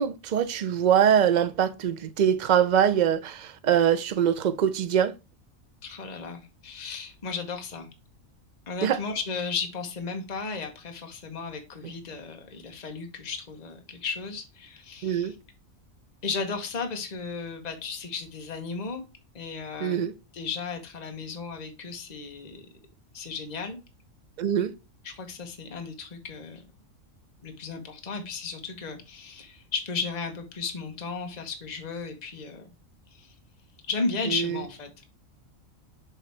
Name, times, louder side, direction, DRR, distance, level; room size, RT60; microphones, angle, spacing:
voice 1, 0.0-5.1 8.8-9.0 15.0-15.3 19.8-20.1 24.4-24.7 34.3-34.6, right 9 dB, 75° right, 0.4 m, -23 dB
voice 2, 5.8-7.9 8.7-15.4 16.2-19.0 19.3-20.0 20.3-22.6 23.1-23.8 25.0-26.6 27.4-32.7 33.1-33.3 33.9-34.9, left 4 dB, 35° left, 1.1 m, -34 dB
7.0 x 3.6 x 4.3 m
omnidirectional pair, 1.4 m